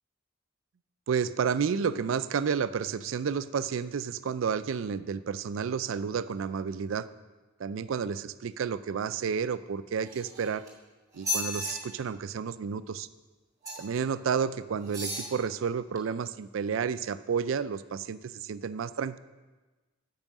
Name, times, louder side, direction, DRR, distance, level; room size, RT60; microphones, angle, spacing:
voice 1, 1.1-7.1 7.6-10.6 11.1-13.1 13.8-19.2, right 6 dB, 80° right, 14 dB, 0.4 m, -31 dB
sound 1, 10.0-10.7 11.1-11.7 13.6-14.0 14.8-15.3 16.0-16.1, left 1 dB, 20° right, 1.9 m, -34 dB
8.9 x 5.6 x 7.3 m, 1.2 s
head